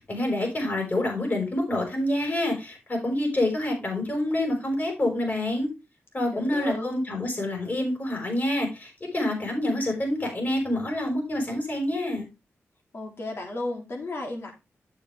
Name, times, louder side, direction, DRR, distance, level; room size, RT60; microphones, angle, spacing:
voice 1, 0.1-5.7 6.1-12.3, left 1 dB, 40° left, 2 dB, 5.3 m, -27 dB
voice 2, 6.3-6.9 12.9-14.5, left 2 dB, 55° left, 1 dB, 3.2 m, -34 dB
8.4 x 7.8 x 3.5 m, 0.25 s
cardioid pair, 70°, 5 cm